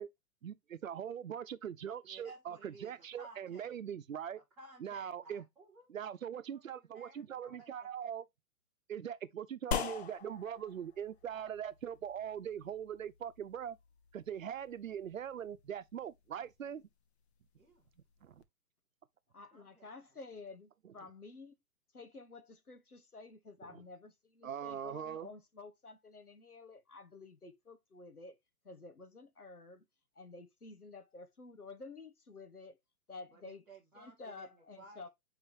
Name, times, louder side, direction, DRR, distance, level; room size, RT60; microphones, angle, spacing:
voice 1, 0.4-4.4 4.8-5.4 5.9-8.3 8.9-13.8 14.1-16.8 18.2-18.4 20.8-20.9 23.7-23.8 24.4-25.3, right 9 dB, 65° right, 0.8 m, -41 dB
voice 2, 2.0-3.7 4.3-5.9 6.7-7.9 17.6-17.8 19.5-19.9 33.3-35.1, right 3 dB, 5° right, 0.4 m, -57 dB
sound 1, 9.7-18.4, left 7 dB, 45° left, 1.1 m, -45 dB
voice 3, 19.3-21.5 21.9-28.4 28.6-29.8 30.1-32.8 33.1-33.7 34.0-35.1, left 3 dB, 90° left, 1.3 m, -51 dB
7.8 x 4.8 x 2.7 m
figure-of-eight pair, 120°, 44 cm